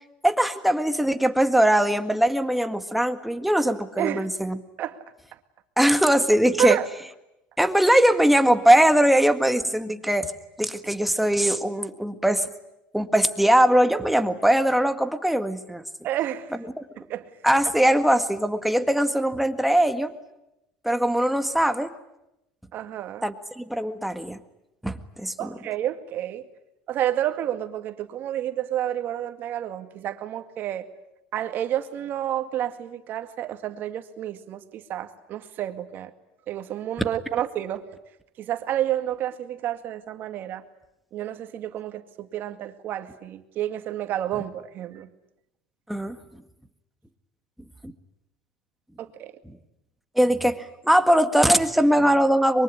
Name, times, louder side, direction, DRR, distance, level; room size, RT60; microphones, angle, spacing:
voice 1, 0.2-4.6 5.8-6.8 7.6-10.3 10.6-12.5 12.9-15.8 17.4-20.1 20.8-21.9 23.2-24.4 24.8-25.5 45.9-46.2 47.8-47.9 50.2-52.6, right 1 dB, ahead, 8 dB, 1.8 m, -21 dB
voice 2, 16.0-16.5 17.1-17.3 22.7-23.3 25.4-26.4 26.9-30.9 31.3-36.1 36.5-37.9 38.4-40.6 41.1-45.1 49.0-49.3, right 12 dB, 50° right, 9 dB, 2.2 m, -30 dB
24.0 x 23.0 x 10.0 m, 0.88 s
supercardioid pair, 110°, 4 cm